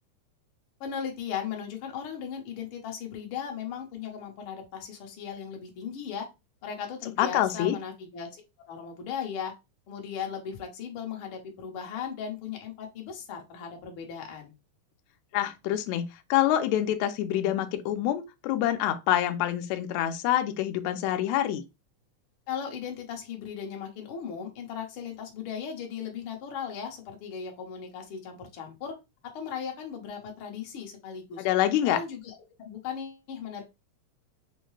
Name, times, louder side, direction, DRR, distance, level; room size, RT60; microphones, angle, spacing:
voice 1, 0.8-6.3 6.6-8.4 8.7-9.5 9.9-14.5 22.5-29.0 29.3-31.5 31.8-33.6, left 7 dB, 60° left, 1.4 m, -37 dB
voice 2, 7.2-7.8 15.3-16.1 16.3-21.6 31.4-32.0, left 12 dB, 80° left, 1.8 m, -26 dB
5.5 x 2.1 x 3.1 m
omnidirectional pair, 3.4 m